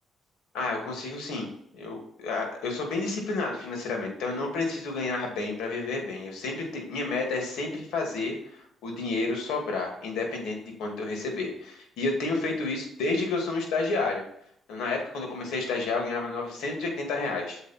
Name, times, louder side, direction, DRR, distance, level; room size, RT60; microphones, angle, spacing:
voice 1, 0.5-1.5 1.7-14.2 14.7-17.6, left 3 dB, 85° left, 2 dB, 2.3 m, -30 dB
7.2 x 4.7 x 4.3 m, 0.70 s
cardioid pair, 90°, 0 cm